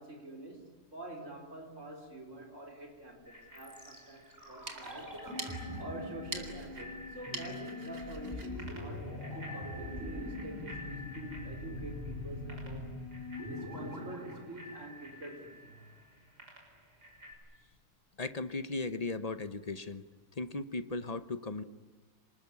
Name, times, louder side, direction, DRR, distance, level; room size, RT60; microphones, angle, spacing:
voice 1, 0.0-5.2 5.8-12.9 13.5-15.8, right 2 dB, 50° right, 2 dB, 4.8 m, -46 dB
Bicycle bell, 3.3-17.3, equal, 80° right, 6.6 m, -52 dB
sound 1, 3.5-15.5 15.8-15.9, left 2 dB, 10° right, 6.0 m, -43 dB
sound 2, 4.4-9.7, right 3 dB, 65° right, 3.1 m, -47 dB
voice 2, 18.2-20.0 20.3-21.6, left 3 dB, 30° left, 12 dB, 0.8 m, -37 dB
26.5 x 20.5 x 9.8 m, 1.3 s
omnidirectional pair, 1.7 m